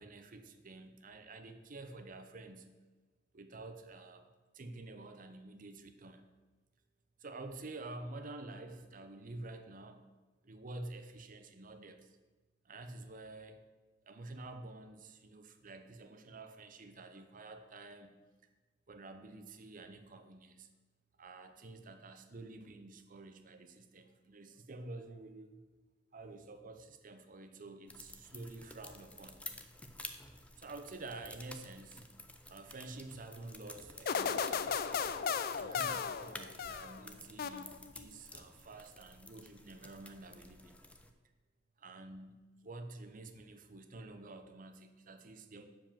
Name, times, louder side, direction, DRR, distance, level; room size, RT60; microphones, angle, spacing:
voice 1, 0.0-2.7 3.3-4.3 4.5-6.2 7.2-10.0 10.4-12.1 12.6-13.6 14.0-18.1 18.9-20.7 21.2-25.6 26.1-29.4 30.6-32.0 32.5-34.7 35.6-40.8 41.8-45.6, right 2 dB, 50° right, 8 dB, 0.8 m, -49 dB
sound 1, 27.9-41.1, left 2 dB, 5° left, 0.6 m, -52 dB
sound 2, 34.1-37.0 37.4-38.0, left 6 dB, 55° left, 0.4 m, -35 dB
7.5 x 4.9 x 7.3 m, 1.2 s
head